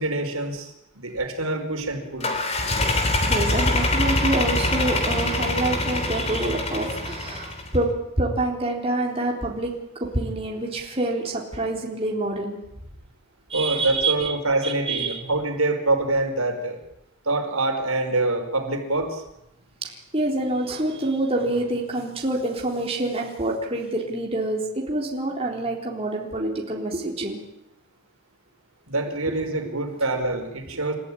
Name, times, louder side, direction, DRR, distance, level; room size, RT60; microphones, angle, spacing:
voice 1, 0.0-2.3 13.5-16.8 17.2-19.2 28.9-30.9, right 2 dB, 80° right, 4 dB, 4.8 m, -25 dB
sound 1, 2.2-7.8, left 2 dB, 30° left, 3.6 m, -24 dB
voice 2, 3.3-9.7 10.0-12.6 13.5-14.3 14.6-15.2 19.8-27.4, right 2 dB, 25° right, -1 dB, 3.8 m, -26 dB
29.5 x 14.5 x 9.9 m, 0.86 s
head